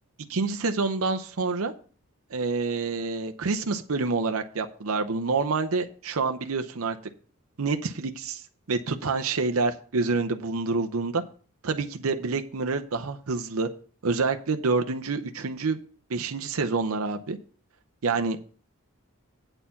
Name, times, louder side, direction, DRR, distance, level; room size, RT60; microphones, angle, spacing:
voice 1, 0.3-1.7 2.3-7.0 7.6-8.4 8.7-11.2 11.6-13.7 14.0-15.8 16.1-17.4 18.0-18.4, right 4 dB, 75° right, 6 dB, 0.7 m, -27 dB
8.9 x 4.4 x 6.9 m, 0.42 s
head